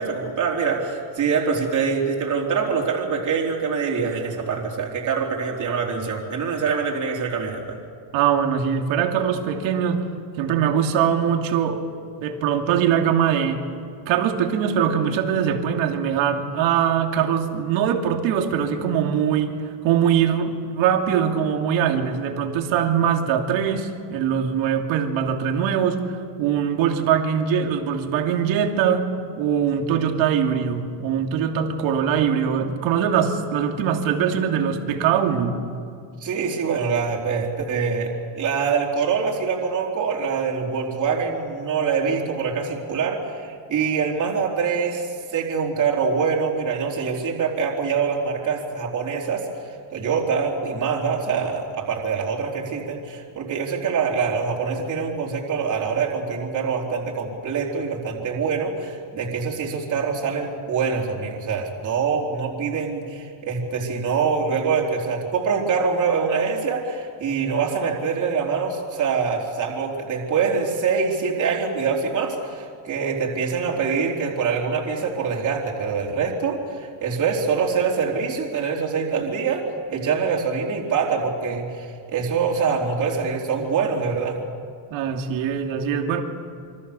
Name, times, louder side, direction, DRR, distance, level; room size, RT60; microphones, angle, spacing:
voice 1, 0.0-7.8 36.2-49.5 49.9-84.4, right 5 dB, 35° right, -1 dB, 4.0 m, -24 dB
voice 2, 8.1-10.1 10.4-11.8 12.2-13.6 14.1-29.1 29.4-35.6 84.9-86.2, right 8 dB, 65° right, 3 dB, 2.9 m, -22 dB
27.0 x 24.5 x 7.0 m, 2.4 s
cardioid pair, 145°, 50 cm